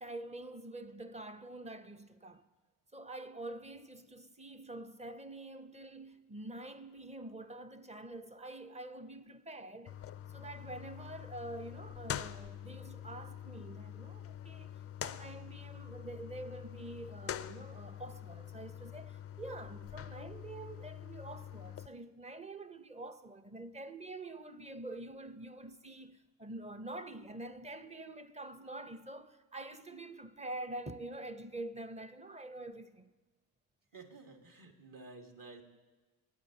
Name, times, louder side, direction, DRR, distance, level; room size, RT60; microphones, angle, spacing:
voice 1, 0.0-2.4 2.9-10.0 10.3-14.7 15.0-33.1, right 2 dB, 15° right, 0.8 m, -46 dB
sound 1, 9.9-21.9, left 10 dB, 30° left, 0.4 m, -45 dB
voice 2, 33.9-35.6, right 3 dB, 45° right, 2.1 m, -52 dB
21.5 x 9.3 x 2.9 m
supercardioid pair, 65°, 47 cm